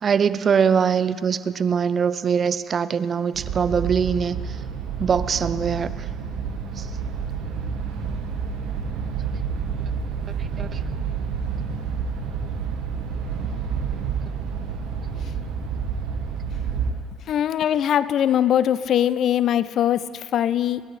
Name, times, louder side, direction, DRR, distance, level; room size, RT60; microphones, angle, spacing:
voice 1, 0.0-4.6 5.0-6.1 6.8-6.9 10.6-10.8, right 7 dB, 45° right, 16 dB, 0.5 m, -22 dB
sound 1, 3.3-16.9, right 6 dB, 75° right, 1.5 m, -29 dB
voice 2, 17.3-20.8, left 10 dB, 60° left, 17 dB, 0.4 m, -21 dB
29.0 x 10.5 x 3.3 m, 2.3 s
hypercardioid pair, 65°, 0 cm